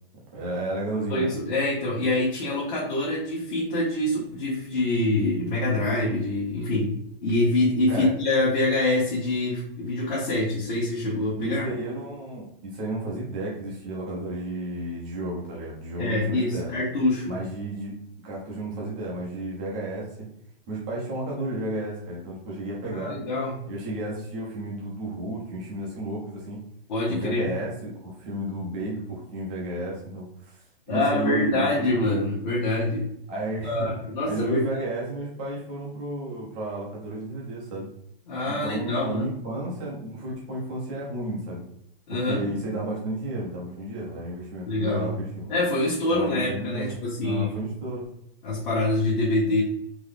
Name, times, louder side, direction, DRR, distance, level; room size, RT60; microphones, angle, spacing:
voice 1, 0.3-1.3 7.9-8.1 11.4-16.7 17.3-17.9 18.2-20.2 20.7-23.2 23.7-26.6 27.1-31.9 33.3-33.9 34.2-37.9 38.5-41.6 42.1-45.5 46.1-47.0 47.2-48.1, right 1 dB, 10° right, -4 dB, 0.3 m, -32 dB
voice 2, 1.1-11.6 16.0-17.3 22.8-23.6 26.9-27.5 30.9-33.1 33.6-34.9 38.3-39.3 42.1-42.5 44.7-45.1 45.5-47.5 48.4-49.6, left 2 dB, 50° left, -7 dB, 1.2 m, -25 dB
3.8 x 2.6 x 3.2 m, 0.72 s
hypercardioid pair, 165°, 29 cm